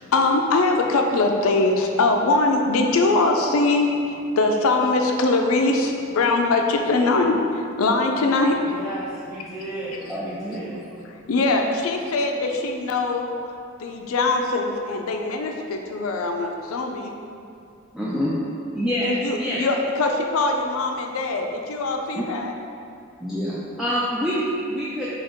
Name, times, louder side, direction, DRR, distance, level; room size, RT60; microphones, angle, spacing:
voice 1, 0.1-8.6 9.9-10.0 10.5-10.6 11.2-13.3 13.8-17.2 19.0-22.5, left 3 dB, 90° left, 3 dB, 0.4 m, -22 dB
voice 2, 8.6-10.8, right 1 dB, 70° right, -17 dB, 1.3 m, -34 dB
voice 3, 10.1-10.6 17.9-18.3 18.7-19.6 22.1-22.2 23.2-25.1, equal, ahead, -9 dB, 0.3 m, -26 dB
3.6 x 3.0 x 3.4 m, 2.4 s
head